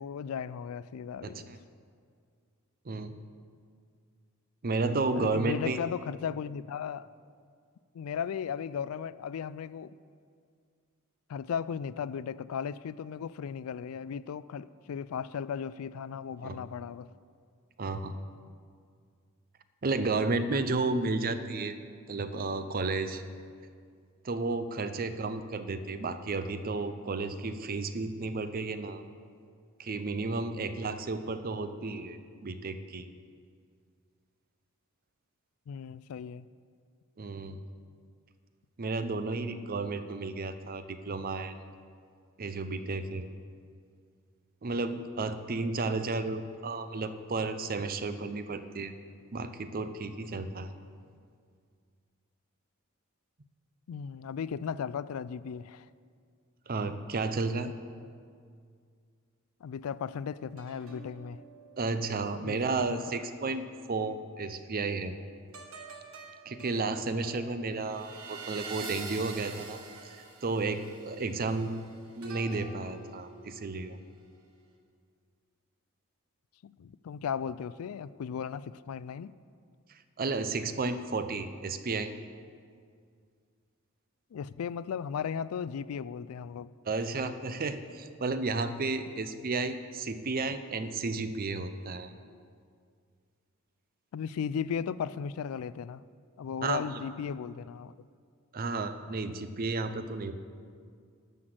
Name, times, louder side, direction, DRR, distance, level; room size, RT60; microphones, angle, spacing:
voice 1, 0.0-1.5 5.1-7.1 7.9-10.0 11.3-17.1 35.7-36.5 53.9-55.9 59.6-61.4 62.3-63.0 76.6-79.3 84.3-86.7 94.1-96.0 96.4-97.9, left 7 dB, 80° left, 18 dB, 0.3 m, -36 dB
voice 2, 1.2-1.6 2.9-3.1 4.6-5.8 16.4-16.6 17.8-18.1 19.8-21.8 22.1-23.2 24.2-29.0 29.8-33.1 37.2-37.6 38.8-41.5 42.4-43.3 44.6-48.9 49.3-50.7 56.7-57.7 61.8-65.1 66.5-69.8 70.0-71.8 72.1-74.0 80.2-82.1 86.9-92.1 96.6-96.8 98.5-100.3, right 3 dB, 45° right, 10 dB, 0.6 m, -32 dB
sound 1, 60.6-64.2 65.5-74.1 74.5-74.7, right 4 dB, 80° right, 1.5 m, -47 dB
12.5 x 6.0 x 7.8 m, 2.2 s
head